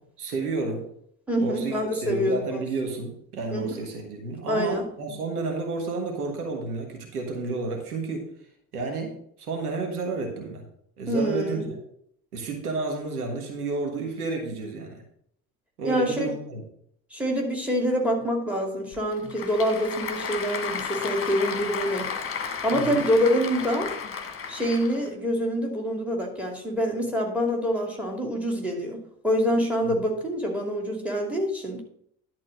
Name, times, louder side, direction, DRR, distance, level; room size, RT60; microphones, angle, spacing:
voice 1, 0.2-0.9 1.4-8.3 8.7-10.6 11.0-11.8 12.3-15.0 15.8-16.6 22.7-23.0 29.9-30.0, right 3 dB, 80° right, 2 dB, 1.5 m, -31 dB
voice 2, 1.3-2.6 3.5-3.7 4.5-4.8 11.1-11.6 15.8-16.3 17.1-22.1 22.6-23.9 24.5-31.8, equal, 5° right, 1 dB, 2.5 m, -26 dB
Applause / Crowd, 18.9-25.1, left 6 dB, 30° left, 1.4 m, -33 dB
11.0 x 4.2 x 6.2 m, 0.69 s
figure-of-eight pair, 55°, 44 cm